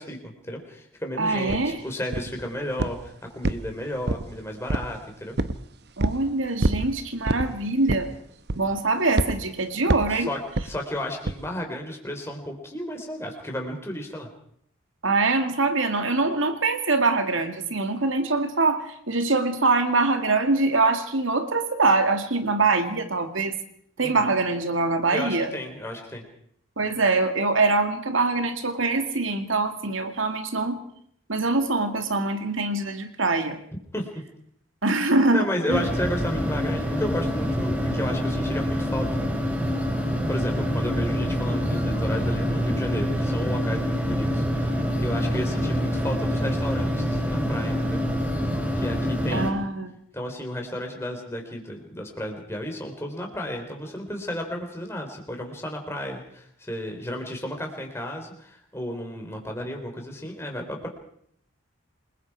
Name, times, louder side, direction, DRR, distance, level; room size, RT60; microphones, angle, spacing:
voice 1, 0.0-5.3 10.1-14.3 24.0-24.3 25.1-26.2 33.9-34.1 35.0-39.1 40.3-48.0 48.8-49.5 50.1-60.9, left 1 dB, 15° left, 2 dB, 3.8 m, -33 dB
voice 2, 1.2-1.8 6.0-8.1 8.6-10.3 15.0-23.5 24.0-25.5 26.8-30.8 31.3-33.6 34.8-35.8 49.3-50.0, right 3 dB, 75° right, 7 dB, 2.4 m, -24 dB
sound 1, 1.5-1.6 2.1-2.4 2.8-3.1 3.4-4.3 4.7-5.0 5.4-5.6 6.0-6.2 6.6-6.9 7.3-7.5 7.9-8.2 8.5-8.8 9.2-9.4 9.9-10.2 10.6-10.7 11.3-11.4, right 2 dB, 50° right, 0.9 m, -25 dB
sound 2, 35.7-49.5, equal, 10° right, 3.4 m, -26 dB
28.0 x 21.0 x 4.9 m, 0.68 s
head